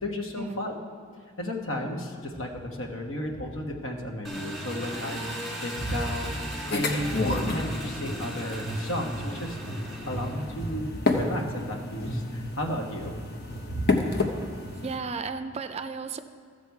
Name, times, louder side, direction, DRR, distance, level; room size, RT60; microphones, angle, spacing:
voice 1, 0.0-0.8 1.4-9.6 10.0-13.1 13.7-13.9, equal, 85° left, 2 dB, 1.3 m, -33 dB
sound 1, 2.6-2.7 3.3-3.5 7.1-8.3 8.6-8.8 9.1-13.2 13.5-13.7 14.0-14.2 14.5-14.7, right 1 dB, 30° left, 2.0 m, -36 dB
Engine, 4.2-10.7, equal, ahead, 1.5 m, -38 dB
sound 2, 6.7-15.0, left 3 dB, 55° left, 0.9 m, -31 dB
voice 2, 14.8-16.2, right 4 dB, 30° right, 10 dB, 0.4 m, -34 dB
14.5 x 7.0 x 4.7 m, 2.1 s
head